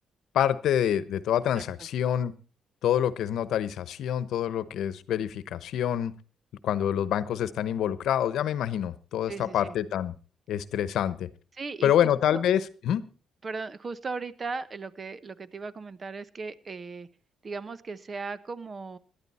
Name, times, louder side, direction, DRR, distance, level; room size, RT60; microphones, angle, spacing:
voice 1, 0.3-2.3 2.8-6.1 6.6-10.1 10.5-11.3 11.8-13.0, left 10 dB, 75° left, 16 dB, 1.0 m, -26 dB
voice 2, 9.3-9.7 11.6-11.9 12.3-12.4 13.4-17.1 17.4-19.0, right 4 dB, 35° right, 16 dB, 1.0 m, -37 dB
18.0 x 12.0 x 4.3 m, 0.37 s
cardioid pair, 90°, 0 cm